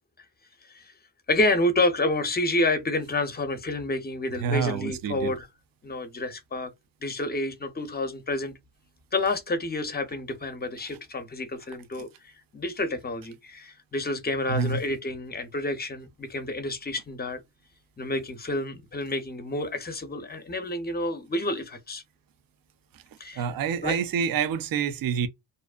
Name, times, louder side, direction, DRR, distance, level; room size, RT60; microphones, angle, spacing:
voice 1, 1.3-5.5 5.8-6.7 7.0-8.5 9.1-17.4 18.0-22.0 23.2-23.5 23.8-24.0, left 2 dB, 20° left, 0.6 m, -29 dB
voice 2, 4.4-5.3 14.5-14.8 23.4-25.3, right 6 dB, 50° right, 0.5 m, -27 dB
2.6 x 2.0 x 2.3 m
cardioid pair, 60°, 48 cm